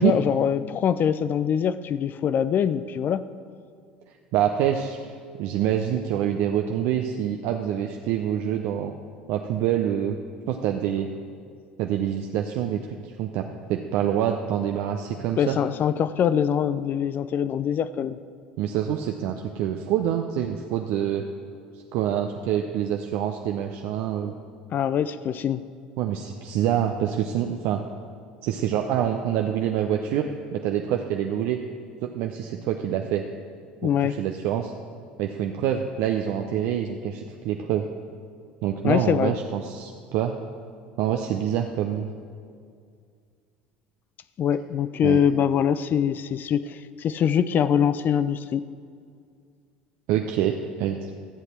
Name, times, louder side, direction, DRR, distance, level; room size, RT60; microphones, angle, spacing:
voice 1, 0.0-3.2 15.4-18.2 24.7-25.6 33.8-34.2 38.8-39.3 44.4-48.7, left 8 dB, 40° left, 14 dB, 0.4 m, -23 dB
voice 2, 4.3-5.1 5.4-8.9 9.3-10.2 10.5-11.1 11.8-12.8 13.2-15.6 18.6-21.2 21.9-24.3 26.0-27.8 28.4-31.6 32.0-33.2 33.8-34.7 35.2-37.9 38.6-40.3 41.0-42.1 45.0-45.2 50.1-51.0, right 10 dB, 60° right, 3 dB, 0.6 m, -26 dB
13.5 x 7.9 x 4.4 m, 2.2 s
hypercardioid pair, 65°, 5 cm